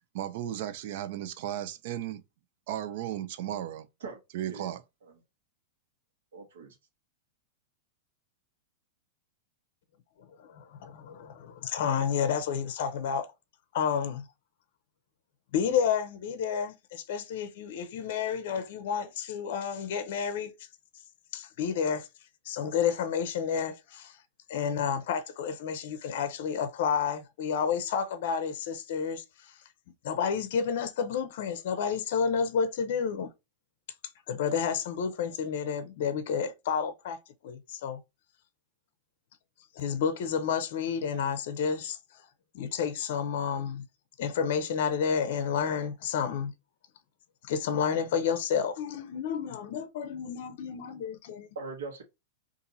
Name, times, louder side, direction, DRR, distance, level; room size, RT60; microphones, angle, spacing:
voice 1, 0.1-2.2 2.7-3.9 4.3-4.8, right 11 dB, 55° right, 0.5 m, -35 dB
voice 2, 4.0-4.7 5.1-5.2 6.3-6.8 51.5-52.0, right 4 dB, 90° right, 1.1 m, -41 dB
voice 3, 10.4-13.3 13.7-14.3 15.5-20.5 21.3-22.1 22.4-24.2 24.5-29.6 30.0-33.3 34.3-37.2 37.4-38.0 39.8-42.2 42.5-43.8 44.2-46.5 47.4-51.5, left 7 dB, 60° left, 0.6 m, -30 dB
2.7 x 2.5 x 4.0 m
supercardioid pair, 155°, 0 cm